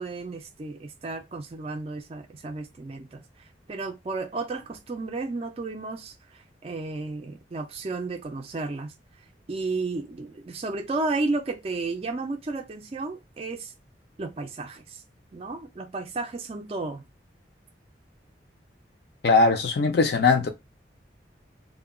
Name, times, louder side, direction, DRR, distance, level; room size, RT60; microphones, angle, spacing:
voice 1, 0.0-3.2 3.7-8.9 9.5-13.7 14.2-15.0 15.3-17.1, right 3 dB, 35° right, 0.3 m, -33 dB
voice 2, 19.2-20.5, left 3 dB, 60° left, 0.4 m, -20 dB
2.2 x 2.1 x 3.5 m
head